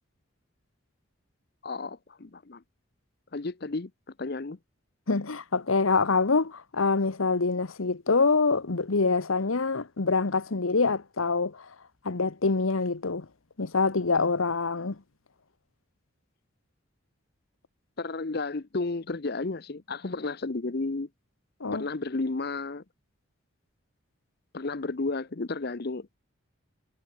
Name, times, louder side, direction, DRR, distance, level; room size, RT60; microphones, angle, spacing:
voice 1, 1.6-2.6 3.3-3.9 4.2-4.6 18.0-21.1 21.7-22.8 24.5-26.1, left 3 dB, 50° left, 0.7 m, -32 dB
voice 2, 5.1-11.7 12.0-13.3 13.6-15.0 21.6-21.9, left 4 dB, 85° left, 1.1 m, -25 dB
head